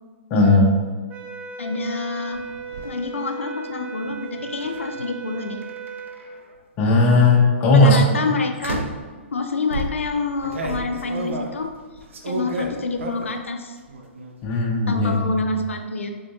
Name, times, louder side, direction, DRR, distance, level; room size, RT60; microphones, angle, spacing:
voice 1, 0.3-0.7 6.8-8.0 14.4-15.1, left 2 dB, 30° left, -2 dB, 0.8 m, -16 dB
sound 1, 1.1-6.3, right 6 dB, 15° right, 0.3 m, -36 dB
voice 2, 1.6-2.5 2.8-5.6 7.7-8.8 9.3-11.7 12.3-13.8 14.9-16.1, left 3 dB, 90° left, 5 dB, 0.4 m, -27 dB
sound 2, 2.3-2.9 4.6-4.9 5.6-6.4 7.2-7.5 8.6-9.1 9.7-13.5 13.8-14.4 14.6-15.2, right 2 dB, 75° right, 0.5 m, -32 dB
3.8 x 3.3 x 2.6 m, 1.5 s
hypercardioid pair, 130°, 7 cm